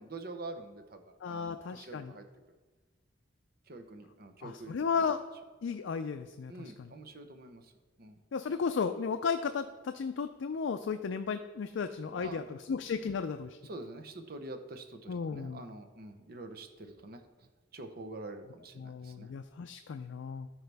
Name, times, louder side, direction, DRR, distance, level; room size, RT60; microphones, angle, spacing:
voice 1, 0.0-2.6 3.7-5.1 6.5-7.7 8.0-8.2 12.1-12.6 13.6-17.5 17.7-19.3, right 2 dB, 50° right, 6 dB, 0.8 m, -46 dB
voice 2, 1.2-2.1 4.4-5.2 5.6-6.9 8.3-13.6 15.1-15.6 18.8-20.5, left 5 dB, 70° left, 8 dB, 0.4 m, -34 dB
13.5 x 4.7 x 3.4 m, 1.3 s
head